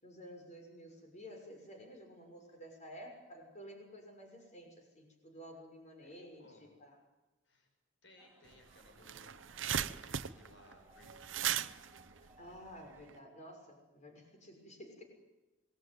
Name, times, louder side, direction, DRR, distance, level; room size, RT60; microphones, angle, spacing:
voice 1, 0.0-7.0 12.2-15.0, equal, 40° left, 4 dB, 6.3 m, -52 dB
voice 2, 6.0-6.7 7.4-7.7 8.0-11.7, left 1 dB, 65° left, 4 dB, 6.5 m, -62 dB
sound 1, 8.2-13.2, right 1 dB, 10° right, 2.6 m, -65 dB
sound 2, 8.5-8.6 8.8-13.1, right 9 dB, 85° right, 0.9 m, -38 dB
27.0 x 21.0 x 9.5 m, 1.1 s
head